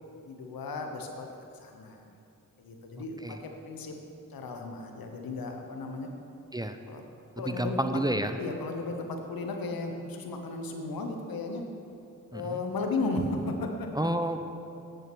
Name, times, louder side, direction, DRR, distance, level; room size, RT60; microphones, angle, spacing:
voice 1, 0.2-2.1 2.6-3.9 4.3-6.1 6.9-7.0 7.4-8.0 8.4-11.6 12.3-14.1, left 3 dB, 85° left, 3 dB, 1.0 m, -35 dB
voice 2, 7.5-8.3 12.3-12.6 14.0-14.4, right 1 dB, 10° right, 8 dB, 0.6 m, -29 dB
9.2 x 6.5 x 6.1 m, 2.7 s
cardioid pair, 40°, 35 cm